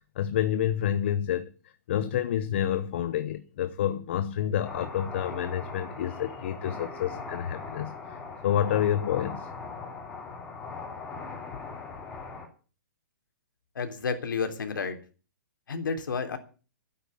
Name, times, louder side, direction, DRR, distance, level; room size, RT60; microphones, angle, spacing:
voice 1, 0.2-1.5 1.9-8.2 8.4-9.5, left 10 dB, 35° left, 0.8 m, -28 dB
sound 1, 4.6-12.5, left 4 dB, 10° left, 2.9 m, -40 dB
voice 2, 13.7-15.0 15.7-16.4, left 5 dB, 85° left, 3.4 m, -31 dB
12.5 x 9.5 x 8.4 m
hypercardioid pair, 175°, 10 cm